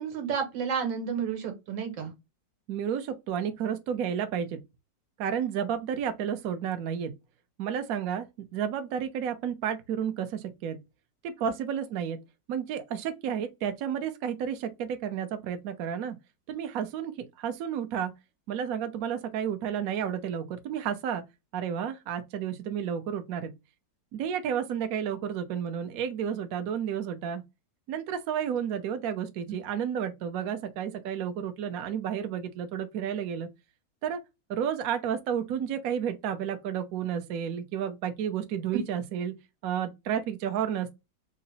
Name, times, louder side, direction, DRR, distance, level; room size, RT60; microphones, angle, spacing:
voice 1, 0.0-2.1 11.4-11.5, right 7 dB, 90° right, 1.7 m, -31 dB
voice 2, 2.7-4.6 5.2-7.1 7.6-8.3 8.5-10.8 11.2-12.2 12.5-16.2 16.5-18.1 18.5-21.2 21.5-23.5 24.1-27.4 27.9-33.5 34.0-34.2 34.5-39.3 39.6-40.9, right 8 dB, 65° right, 1.0 m, -31 dB
3.8 x 2.1 x 4.0 m
omnidirectional pair, 2.0 m